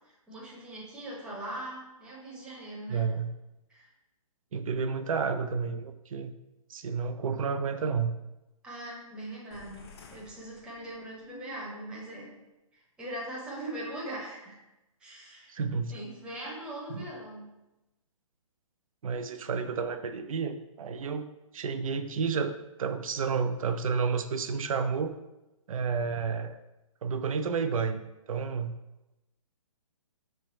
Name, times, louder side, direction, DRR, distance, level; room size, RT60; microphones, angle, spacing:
voice 1, 0.3-3.1 3.7-3.9 8.6-12.3 13.0-14.6 15.0-15.6 15.9-17.5, right 1 dB, 5° right, -5 dB, 0.8 m, -40 dB
voice 2, 2.9-3.3 4.5-6.3 6.7-8.2 15.5-15.9 16.9-17.1 19.0-21.3 21.5-22.5 22.8-25.1 25.7-26.6 27.0-28.0 28.3-28.8, right 5 dB, 75° right, 9 dB, 0.5 m, -30 dB
sound 1, 9.5-11.4, left 5 dB, 45° left, 0.5 m, -53 dB
3.3 x 3.3 x 4.3 m, 0.99 s
hypercardioid pair, 150°, 18 cm